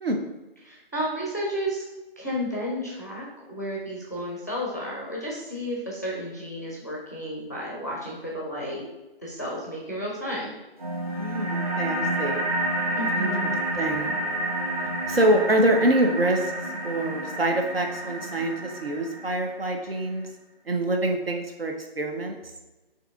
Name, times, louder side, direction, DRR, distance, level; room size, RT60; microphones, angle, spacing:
voice 1, 0.6-1.8 2.2-8.8 9.2-10.5 13.0-13.6, equal, 20° left, -4 dB, 0.5 m, -32 dB
sound 1, 10.8-19.8, right 1 dB, 35° right, 1.0 m, -29 dB
voice 2, 11.1-12.4 13.1-14.1 15.1-16.5 16.8-20.3 20.7-22.4, right 1 dB, 70° right, 4 dB, 0.8 m, -25 dB
4.8 x 3.0 x 3.5 m, 1.1 s
figure-of-eight pair, 150°, 30 cm